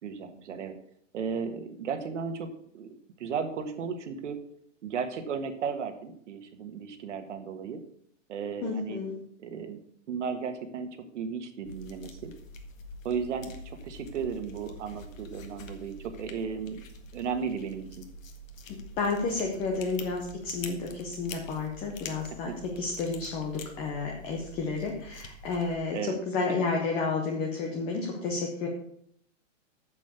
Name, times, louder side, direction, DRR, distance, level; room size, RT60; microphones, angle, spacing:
voice 1, 0.0-0.7 1.1-2.9 3.2-4.4 4.8-7.8 8.3-9.0 9.4-9.8 10.1-10.9 11.1-12.3 13.0-16.8 17.1-18.1 22.5-22.6 25.9-26.2, right 6 dB, 65° right, 8 dB, 1.7 m, -35 dB
voice 2, 8.6-9.1 19.0-26.0 26.3-28.7, left 4 dB, 15° left, 1 dB, 0.7 m, -31 dB
sound 1, 11.6-25.8, left 2 dB, 90° left, 1.8 m, -46 dB
7.5 x 7.3 x 6.9 m, 0.69 s
hypercardioid pair, 170°, 39 cm